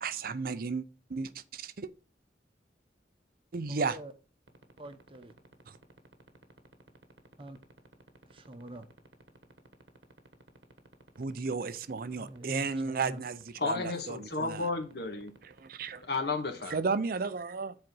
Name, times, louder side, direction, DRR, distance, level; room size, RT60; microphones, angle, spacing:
voice 1, 0.0-1.9 3.5-4.0 5.7-5.8 11.2-14.7 15.6-16.0 16.7-17.8, right 4 dB, 55° right, 0.5 m, -34 dB
voice 2, 3.7-4.1 4.8-5.3 7.4-7.6 8.3-8.9 12.2-13.2, right 1 dB, 30° right, 0.9 m, -45 dB
sound 1, 4.5-16.8, right 3 dB, 80° right, 1.3 m, -54 dB
voice 3, 13.6-15.3 16.1-16.8, left 3 dB, 60° left, 1.7 m, -32 dB
7.7 x 4.2 x 6.1 m
head